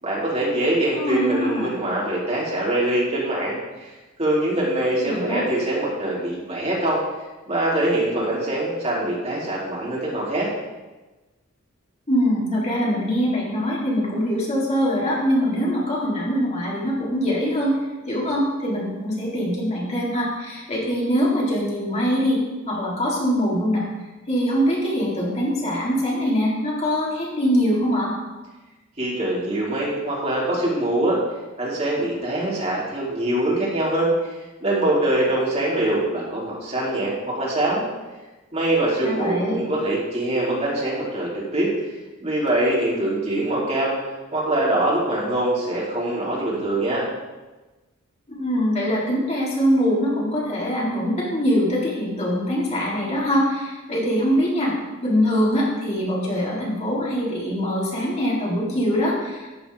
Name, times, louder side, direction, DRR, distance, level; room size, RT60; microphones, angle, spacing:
voice 1, 0.0-3.9 4.2-7.0 7.5-10.5 29.0-31.2 31.6-37.8 38.5-41.7 42.2-44.0 44.3-47.0, right 1 dB, 30° right, -6 dB, 4.2 m, -23 dB
voice 2, 1.0-1.7 5.1-5.4 12.1-17.8 18.1-22.4 22.7-23.9 24.3-28.1 39.0-39.6 48.3-54.7 55.0-59.6, equal, 30° left, -6 dB, 4.2 m, -23 dB
14.0 x 8.0 x 5.1 m, 1.1 s
head